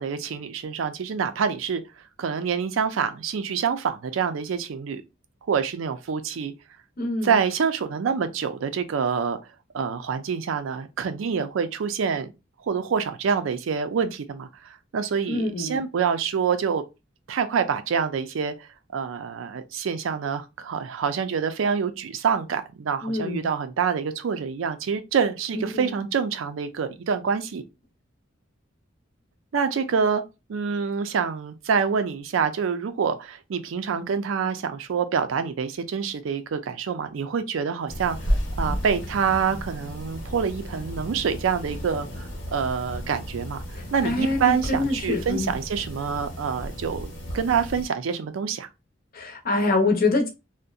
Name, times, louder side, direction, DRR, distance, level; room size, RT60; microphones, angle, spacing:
voice 1, 0.0-1.8 2.2-5.0 5.5-6.5 7.2-9.4 9.7-12.3 12.7-14.5 14.9-16.8 17.3-27.6 29.5-30.2 30.5-38.2 38.6-43.6 43.9-48.7, right 6 dB, 85° right, 0.4 m, -26 dB
voice 2, 7.0-7.3 15.3-15.8 23.0-23.5 25.7-25.9 44.0-45.5 49.1-50.3, left 2 dB, 50° left, 0.7 m, -25 dB
sound 1, 37.9-47.9, equal, 80° left, 1.0 m, -33 dB
2.6 x 2.1 x 2.3 m
head